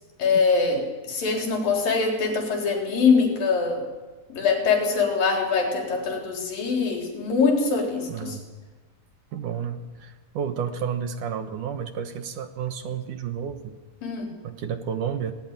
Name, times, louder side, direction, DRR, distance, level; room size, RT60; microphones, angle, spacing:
voice 1, 0.2-3.9 4.3-8.4 14.0-14.3, left 4 dB, 70° left, 1 dB, 5.4 m, -23 dB
voice 2, 8.1-8.4 9.3-13.8 14.4-15.3, right 7 dB, 65° right, 8 dB, 2.5 m, -31 dB
19.0 x 18.5 x 9.0 m, 1.3 s
omnidirectional pair, 4.2 m